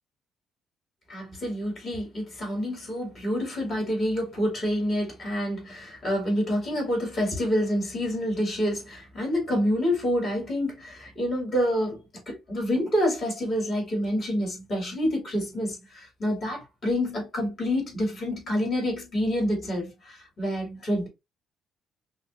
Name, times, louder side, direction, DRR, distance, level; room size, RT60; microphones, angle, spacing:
voice 1, 1.1-21.1, equal, 35° left, 2.6 m, -28 dB
5.6 x 2.0 x 2.6 m
cardioid pair, 150°, 0 cm